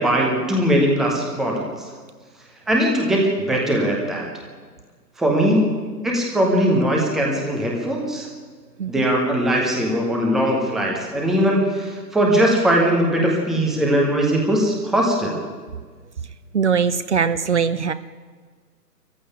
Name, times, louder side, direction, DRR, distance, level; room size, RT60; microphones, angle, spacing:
voice 1, 0.0-1.7 2.7-4.3 5.2-5.8 6.0-8.3 8.9-15.4, equal, ahead, -1 dB, 0.9 m, -20 dB
voice 2, 16.5-17.9, right 6 dB, 45° right, 13 dB, 0.8 m, -21 dB
23.5 x 14.5 x 9.9 m, 1.5 s
figure-of-eight pair, 135°, 49 cm